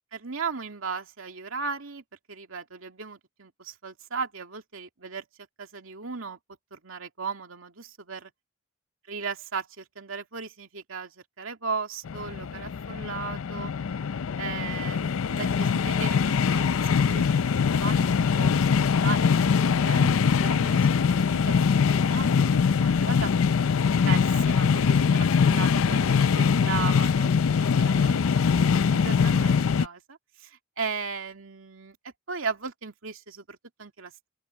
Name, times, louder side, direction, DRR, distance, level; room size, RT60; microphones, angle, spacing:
voice 1, 0.1-5.3 5.6-6.4 6.7-8.3 9.1-13.7 14.4-23.3 24.1-32.0 32.3-34.3, right 5 dB, 80° right, 2.4 m, -37 dB
sound 1, 12.1-29.9, left 6 dB, 90° left, 0.5 m, -23 dB
open air
head